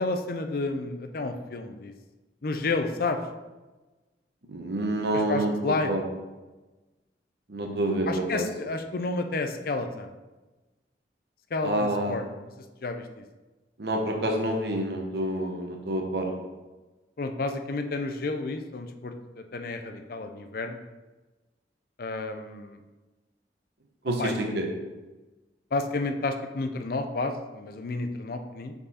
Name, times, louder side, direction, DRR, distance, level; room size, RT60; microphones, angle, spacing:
voice 1, 0.0-1.9 2.4-3.2 5.1-5.9 8.1-10.1 11.5-12.2 12.8-13.2 17.2-20.8 22.0-22.8 24.2-24.5 25.7-28.7, left 3 dB, 55° left, 6 dB, 0.5 m, -31 dB
voice 2, 4.5-5.5 5.9-6.0 7.5-8.5 11.6-12.2 13.8-16.3 24.0-24.7, right 1 dB, 65° right, 2 dB, 0.9 m, -28 dB
5.4 x 4.7 x 4.2 m, 1.2 s
head